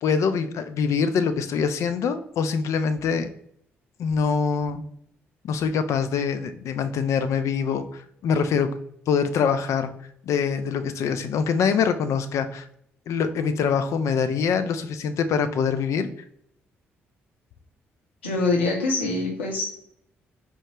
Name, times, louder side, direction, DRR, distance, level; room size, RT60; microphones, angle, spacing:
voice 1, 0.0-3.3 4.0-4.8 5.4-8.7 9.1-9.9 10.2-12.7 13.1-16.1, left 6 dB, 55° left, 9 dB, 0.3 m, -24 dB
voice 2, 18.2-19.7, left 3 dB, 85° left, -3 dB, 0.7 m, -24 dB
4.5 x 2.1 x 3.2 m, 0.71 s
figure-of-eight pair, 40°, 6 cm